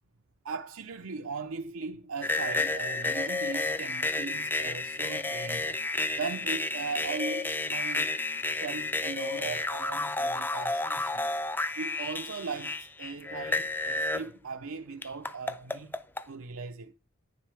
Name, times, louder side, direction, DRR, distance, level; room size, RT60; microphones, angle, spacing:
voice 1, 0.4-5.8 6.2-8.1 8.5-11.3 11.8-15.9 16.3-16.9, right 5 dB, 80° right, 0.7 m, -38 dB
sound 1, 2.2-14.3 15.0-16.2, left 3 dB, 10° left, 0.4 m, -31 dB
10.5 x 9.5 x 3.4 m
head